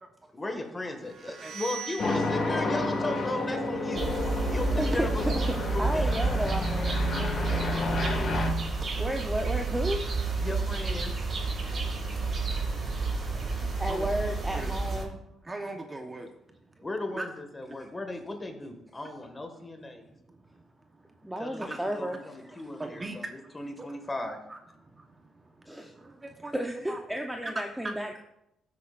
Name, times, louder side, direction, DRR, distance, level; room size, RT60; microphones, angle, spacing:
voice 1, 0.3-4.1 4.5-6.1 10.4-11.1 13.4-13.7 16.8-20.1 21.4-24.4, left 2 dB, 20° left, 5 dB, 1.9 m, -36 dB
sound 1, 1.0-6.7, right 3 dB, 75° right, 1.7 m, -45 dB
sound 2, 2.0-8.5, left 3 dB, 50° left, 1.9 m, -31 dB
sound 3, 3.9-15.0, right 3 dB, 45° right, 4.4 m, -30 dB
voice 2, 5.2-7.0 9.0-10.0 13.6-15.2 21.2-22.6 25.7-25.9 26.5-28.2, equal, 5° right, 3 dB, 0.9 m, -33 dB
voice 3, 7.4-8.4 11.0-11.1 13.7-14.1 14.5-14.8 15.4-16.3 16.8-16.9 17.1-17.3 17.7-17.8 19.9-20.0 20.3-20.7 20.9-21.1 21.6-21.8 22.8-24.1 24.5-26.5 26.9-27.0 27.4-27.5 27.8-27.9, right 2 dB, 20° right, 4 dB, 1.1 m, -41 dB
15.0 x 8.4 x 2.6 m, 0.83 s
cardioid pair, 90°, 0 cm